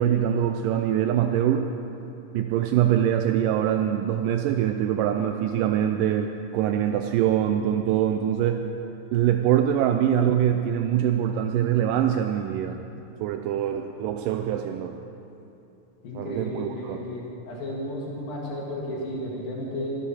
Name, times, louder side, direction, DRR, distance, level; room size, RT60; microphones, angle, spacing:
voice 1, 0.0-1.7 2.3-8.6 9.1-12.8 13.2-15.0 16.1-17.0, right 10 dB, 80° right, 6 dB, 2.1 m, -24 dB
voice 2, 16.0-20.0, left 1 dB, 85° left, -5 dB, 4.0 m, -33 dB
24.5 x 10.0 x 4.3 m, 2.8 s
omnidirectional pair, 4.0 m